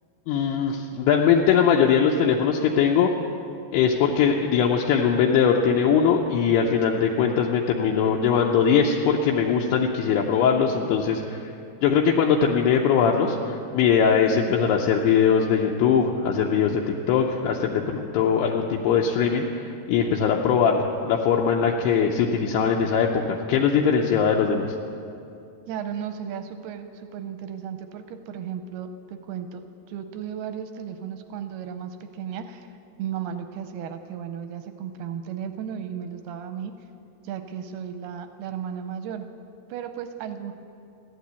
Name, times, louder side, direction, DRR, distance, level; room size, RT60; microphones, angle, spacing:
voice 1, 0.3-3.1 3.7-11.5 11.8-16.8 17.1-24.7, left 7 dB, 80° left, 0 dB, 2.7 m, -21 dB
voice 2, 25.7-29.6 29.9-32.7 33.0-36.7 37.2-39.3 39.7-40.5, right 8 dB, 85° right, 8 dB, 2.4 m, -34 dB
14.5 x 11.5 x 8.2 m, 2.6 s
omnidirectional pair, 4.9 m